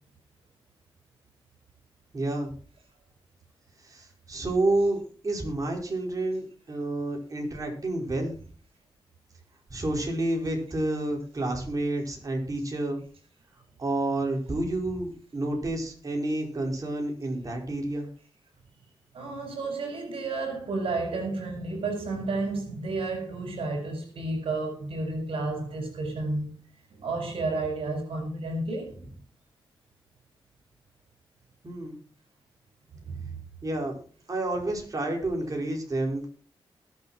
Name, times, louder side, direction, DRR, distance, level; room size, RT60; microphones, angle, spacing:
voice 1, 2.1-2.5 3.8-5.0 5.2-8.4 9.7-13.0 13.8-18.1 31.6-32.0 33.6-34.0 34.3-36.3, right 2 dB, 40° right, 5.2 m, -29 dB
voice 2, 19.1-26.6 26.9-29.0 33.0-33.3, right 3 dB, 80° right, 4.7 m, -31 dB
20.5 x 7.6 x 4.4 m
cardioid pair, 75°, 9 cm